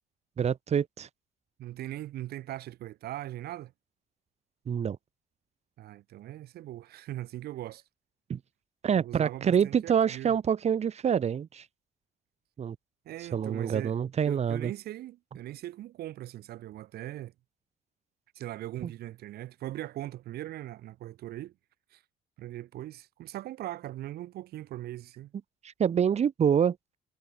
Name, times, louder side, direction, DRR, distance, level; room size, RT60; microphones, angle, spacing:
voice 1, 0.4-1.1 4.7-5.0 8.3-8.4 8.8-11.7 12.6-12.8 13.3-14.7 18.8-18.9 25.8-26.8, right 8 dB, 40° right, 1.7 m, -26 dB
voice 2, 1.6-3.7 5.8-7.8 8.9-10.3 13.0-14.0 14.2-17.3 18.3-21.5 21.9-22.0 22.4-25.3, right 14 dB, 70° right, 1.5 m, -40 dB
cardioid pair, 110°, 17 cm